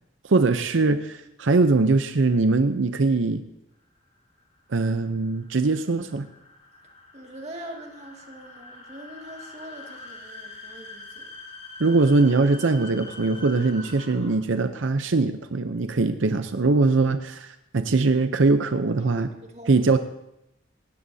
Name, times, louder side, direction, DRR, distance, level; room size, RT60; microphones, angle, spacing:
voice 1, 0.2-3.4 4.7-6.3 11.8-19.3 19.7-20.0, right 3 dB, 90° right, 9 dB, 0.7 m, -21 dB
sound 1, 3.9-14.6, left 2 dB, 40° left, 3.4 m, -44 dB
voice 2, 7.1-11.3 11.8-12.0 18.9-19.9, right 1 dB, 35° right, 1 dB, 2.1 m, -42 dB
18.5 x 17.0 x 2.8 m, 0.86 s
head